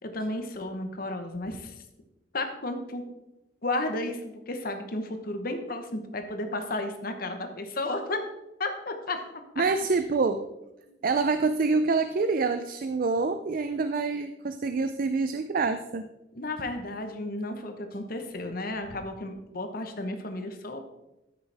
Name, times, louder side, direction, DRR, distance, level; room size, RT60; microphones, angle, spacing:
voice 1, 0.0-1.7 2.3-3.0 3.6-8.2 8.6-9.2 9.5-9.6 10.9-11.0 16.3-20.8, left 2 dB, 50° left, 6 dB, 1.1 m, -33 dB
voice 2, 9.6-10.5 11.0-16.1, right 4 dB, 50° right, 9 dB, 0.4 m, -26 dB
13.0 x 6.6 x 3.5 m, 0.94 s
head